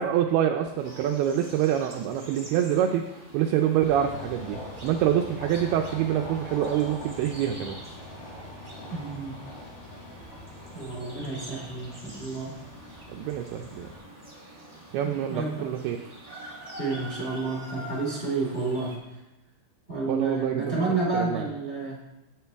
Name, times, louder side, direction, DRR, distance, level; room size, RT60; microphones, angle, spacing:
voice 1, 0.0-3.1 3.3-7.8 13.1-13.9 14.9-16.0 20.1-20.8 21.1-21.5, right 10 dB, 85° right, 4 dB, 2.3 m, -26 dB
sound 1, 0.8-19.0, right 1 dB, 15° right, 1.2 m, -46 dB
sound 2, 3.8-14.0, left 1 dB, 85° left, 4.7 m, -43 dB
voice 2, 8.9-9.4 10.7-12.5 15.0-15.7 16.8-18.9 19.9-22.0, right 3 dB, 20° left, -3 dB, 1.9 m, -30 dB
12.5 x 8.2 x 3.5 m, 0.96 s
omnidirectional pair, 5.0 m